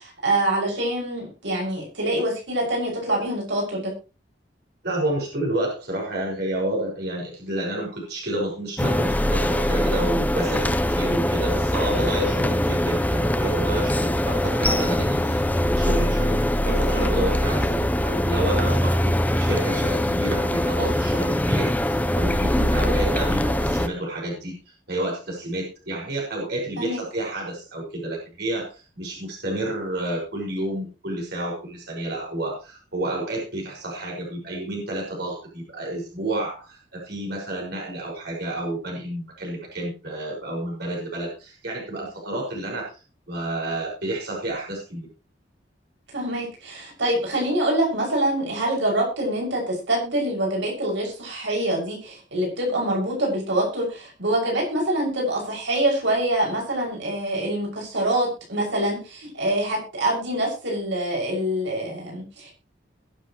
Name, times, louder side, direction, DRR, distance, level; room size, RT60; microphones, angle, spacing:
voice 1, 0.0-3.9 26.8-27.0 46.1-62.5, right 1 dB, 90° right, -2 dB, 6.3 m, -25 dB
voice 2, 4.8-16.4 16.6-24.6 24.9-42.9 43.3-45.1, right 1 dB, 65° right, -2 dB, 5.8 m, -30 dB
sound 1, 8.8-23.9, left 1 dB, 10° left, 0.7 m, -22 dB
21.5 x 7.5 x 3.1 m, 0.31 s
head